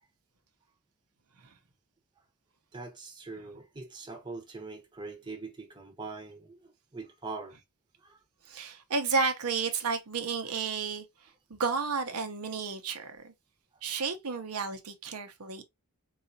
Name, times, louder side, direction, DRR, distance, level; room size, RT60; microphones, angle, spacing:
voice 1, 2.7-7.5 8.0-8.2, right 3 dB, 20° right, 0.8 m, -42 dB
voice 2, 8.5-11.0 11.5-13.3 13.8-15.6, right 4 dB, 85° right, 0.7 m, -32 dB
3.9 x 2.4 x 2.6 m
head